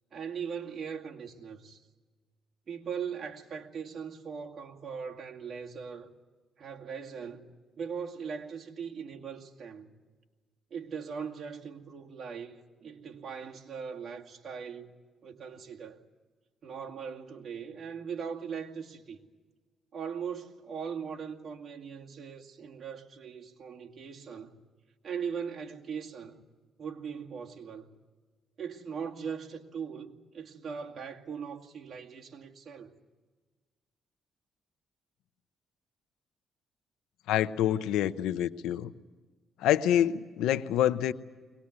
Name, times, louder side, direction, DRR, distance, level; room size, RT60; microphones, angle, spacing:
voice 1, 0.1-1.8 2.7-6.1 6.6-9.9 10.7-14.9 15.2-16.0 16.6-19.2 19.9-24.6 25.0-26.5 26.8-27.9 28.6-32.9, right 6 dB, 50° right, 2.3 m, -40 dB
voice 2, 37.3-38.9 39.6-41.1, left 11 dB, 90° left, 0.7 m, -26 dB
22.5 x 19.5 x 9.7 m
cardioid pair, 90°, 0 cm